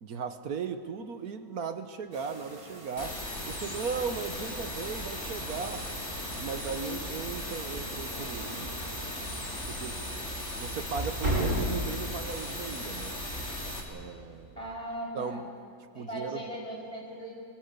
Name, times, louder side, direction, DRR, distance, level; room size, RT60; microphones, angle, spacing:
voice 1, 0.0-5.9 6.4-8.7 9.7-10.0 10.6-13.2 13.9-14.6 15.1-15.4 15.9-16.4, right 6 dB, 80° right, 9 dB, 1.6 m, -37 dB
sound 1, 2.1-9.6, right 2 dB, 20° right, 2.8 m, -48 dB
sound 2, 3.0-13.8, left 1 dB, 50° left, 3.7 m, -37 dB
sound 3, 3.9-14.8, equal, 50° right, 8.6 m, -38 dB
voice 2, 14.6-15.5 15.9-17.4, right 1 dB, 25° left, -3 dB, 7.6 m, -38 dB
24.5 x 24.0 x 8.5 m, 2.2 s
omnidirectional pair, 1.6 m